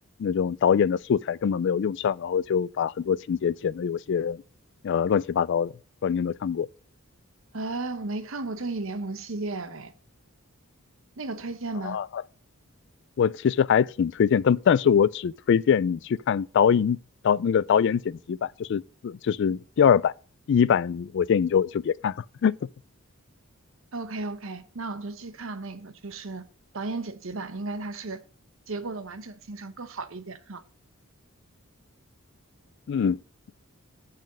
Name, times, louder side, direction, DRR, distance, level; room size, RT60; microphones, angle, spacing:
voice 1, 0.2-4.4 4.8-5.7 6.0-6.7 11.8-12.1 13.2-17.0 17.2-20.1 20.5-22.1 22.4-22.5 32.9-33.2, left 7 dB, 55° left, 0.3 m, -23 dB
voice 2, 7.5-9.9 11.2-12.0 23.9-26.4 26.7-28.2 28.7-30.6, right 3 dB, 65° right, 0.9 m, -34 dB
10.5 x 4.2 x 6.3 m
head